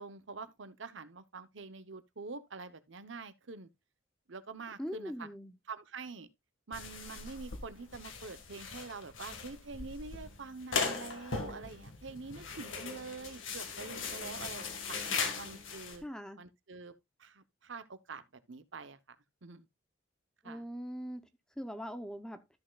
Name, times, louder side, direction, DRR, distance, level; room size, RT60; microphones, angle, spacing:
voice 1, 0.0-3.7 4.3-5.3 5.7-6.3 6.7-15.0 15.3-16.0 16.4-16.9 17.2-19.2 19.4-19.7 20.4-20.6, right 4 dB, 75° right, 0.9 m, -46 dB
voice 2, 4.8-5.5 16.0-16.4 20.4-21.2 21.6-22.4, equal, 5° left, 0.7 m, -41 dB
sound 1, 6.7-16.0, left 5 dB, 85° left, 1.7 m, -39 dB
13.5 x 6.3 x 2.3 m
head